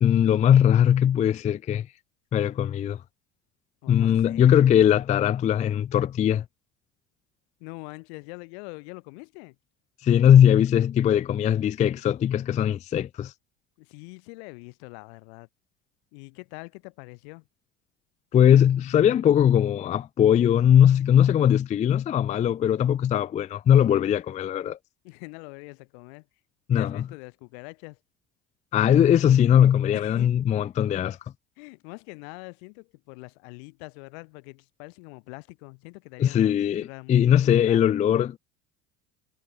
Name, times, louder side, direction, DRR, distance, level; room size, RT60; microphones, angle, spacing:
voice 1, 0.0-1.9 2.3-3.0 3.9-6.4 10.0-13.3 18.3-24.8 26.7-27.0 28.7-31.2 36.2-38.4, left 9 dB, 25° left, 0.3 m, -20 dB
voice 2, 3.8-4.6 7.6-9.6 13.8-15.5 16.1-17.5 25.0-26.3 26.7-28.0 29.9-30.7 31.6-36.5 36.8-37.9, left 34 dB, 80° left, 3.8 m, -43 dB
supercardioid pair, 95°, 32 cm